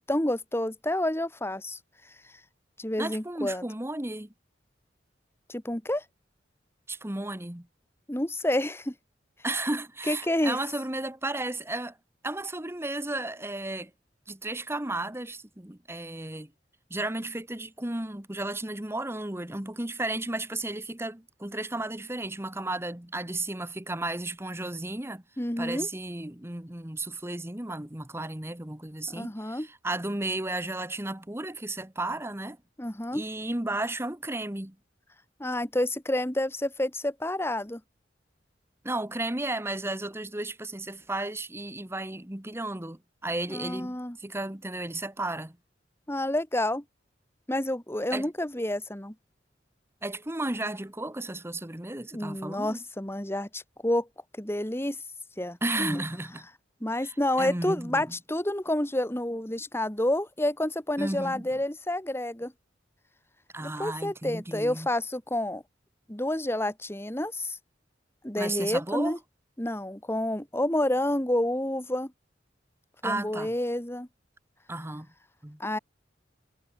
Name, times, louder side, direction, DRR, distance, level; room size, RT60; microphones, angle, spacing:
voice 1, 0.0-1.8 2.8-3.7 5.5-6.0 8.1-8.9 10.1-10.6 25.4-25.9 29.1-29.7 32.8-33.2 35.4-37.8 43.5-44.2 46.1-46.8 47.5-49.1 52.1-54.1 54.4-55.0 55.4-56.0 56.8-62.5 63.6-65.6 66.1-67.6 68.2-69.2 69.6-72.1 73.0-74.1 75.6-75.8, left 1 dB, 15° left, 1.9 m, -29 dB
voice 2, 3.0-4.3 6.9-7.7 9.4-12.0 12.2-13.9 14.3-16.5 16.9-25.2 25.6-32.6 33.1-34.8 38.8-45.6 48.1-48.3 50.0-52.8 55.6-56.5 57.0-58.1 61.0-61.4 63.5-64.9 68.4-69.2 73.0-73.5 74.7-75.1 75.4-75.6, right 2 dB, 15° right, 1.3 m, -34 dB
head